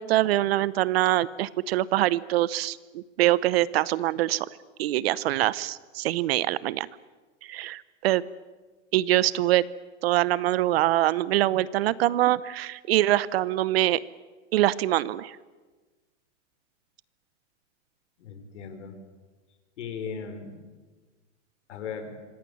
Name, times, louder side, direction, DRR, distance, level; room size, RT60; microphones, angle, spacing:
voice 1, 0.0-4.5 4.8-6.9 7.5-8.2 8.9-9.6 10.0-14.0 14.5-15.4, right 15 dB, 50° right, 20 dB, 0.9 m, -24 dB
voice 2, 18.2-18.9 19.8-20.6 21.7-22.2, left 6 dB, 65° left, 8 dB, 4.7 m, -37 dB
26.0 x 18.0 x 10.0 m, 1.3 s
hypercardioid pair, 150°, 38 cm